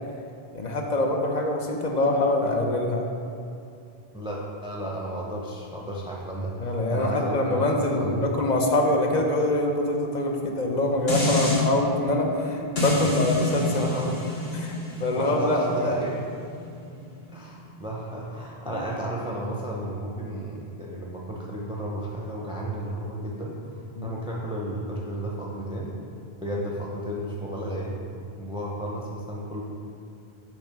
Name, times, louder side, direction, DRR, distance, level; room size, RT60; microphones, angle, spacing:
voice 1, 0.5-3.0 6.6-13.9 14.5-14.7 15.0-15.9 16.9-17.0 18.7-18.9 24.0-24.2, left 1 dB, 50° left, 2 dB, 0.7 m, -24 dB
voice 2, 4.1-6.5 6.9-8.3 13.0-13.1 13.6-14.1 15.1-16.2 17.3-23.7 24.0-25.9 26.4-28.0 28.4-29.6, right 1 dB, 5° right, -4 dB, 0.5 m, -33 dB
sound 1, 11.1-11.6 12.8-17.9 18.4-18.5, left 2 dB, 75° left, 1.5 m, -29 dB
6.9 x 3.1 x 5.8 m, 2.5 s
omnidirectional pair, 1.0 m